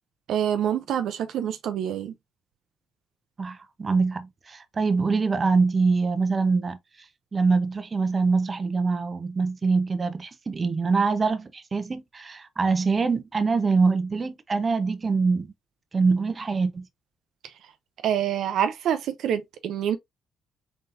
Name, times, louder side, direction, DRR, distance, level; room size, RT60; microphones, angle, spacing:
voice 1, 0.3-2.1 18.0-20.0, right 9 dB, 75° right, 0.5 m, -26 dB
voice 2, 3.4-6.8 7.3-15.5 15.9-16.9, right 4 dB, 35° right, 0.7 m, -24 dB
4.0 x 3.8 x 2.5 m
cardioid pair, 90°, 0 cm